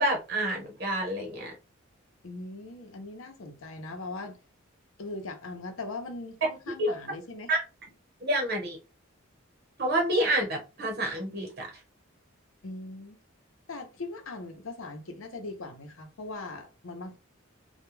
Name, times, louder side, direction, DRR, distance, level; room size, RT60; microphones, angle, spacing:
voice 1, 0.0-1.5 6.8-6.9 7.5-7.6 8.2-8.8 9.8-11.7, right 1 dB, 50° right, 1.0 m, -28 dB
voice 2, 2.2-4.4 5.0-7.5 12.6-13.2 13.7-17.2, left 2 dB, 70° left, 0.7 m, -40 dB
2.2 x 2.2 x 3.1 m
head